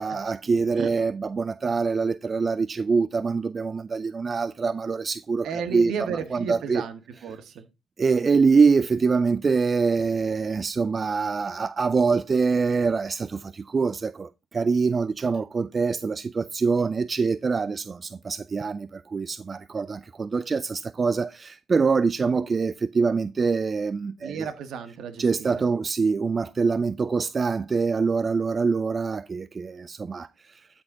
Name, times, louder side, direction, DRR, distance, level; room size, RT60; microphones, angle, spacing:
voice 1, 0.0-6.8 8.0-24.5 25.2-30.7, right 4 dB, 35° right, 0.4 m, -24 dB
voice 2, 5.4-7.7 24.2-25.6, right 6 dB, 65° right, 1.7 m, -34 dB
12.5 x 6.1 x 3.9 m
supercardioid pair, 65°, 0 cm